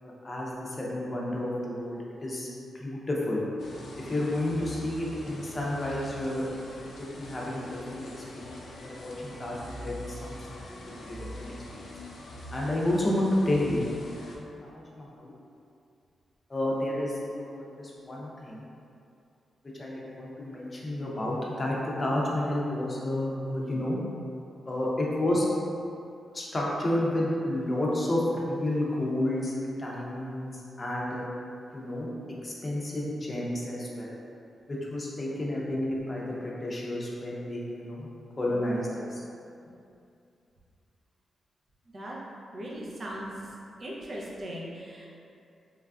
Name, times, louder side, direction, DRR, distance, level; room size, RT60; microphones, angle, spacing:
voice 1, 0.0-2.5 2.8-3.4 4.1-6.4 6.7-8.0 8.4-10.6 10.9-11.5 11.8-11.9 12.5-13.8 14.4-15.3 16.5-18.6 19.8-24.0 24.7-25.5 26.3-29.5 29.8-31.3 31.7-32.1 32.4-34.2 34.7-38.1 38.4-39.2, left 1 dB, 35° left, -4 dB, 0.6 m, -31 dB
sound 1, 3.6-14.4, left 1 dB, 75° left, 0.4 m, -44 dB
voice 2, 42.5-43.3 43.8-45.1, right 1 dB, 50° right, -4 dB, 0.6 m, -38 dB
3.2 x 2.3 x 2.3 m, 2.6 s
cardioid pair, 65°, 0 cm